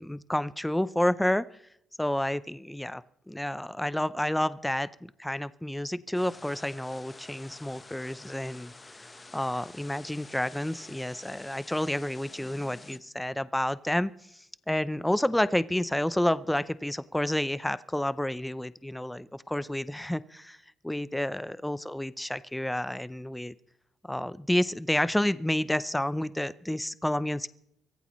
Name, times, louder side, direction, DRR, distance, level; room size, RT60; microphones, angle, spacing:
voice 1, 0.0-1.5 2.0-9.1 9.3-20.6 20.8-23.5 24.0-27.5, left 1 dB, 5° left, 16 dB, 0.5 m, -30 dB
sound 1, 6.1-13.0, left 3 dB, 20° left, 1.1 m, -49 dB
24.0 x 15.5 x 3.1 m, 0.73 s
cardioid pair, 90°, 0 cm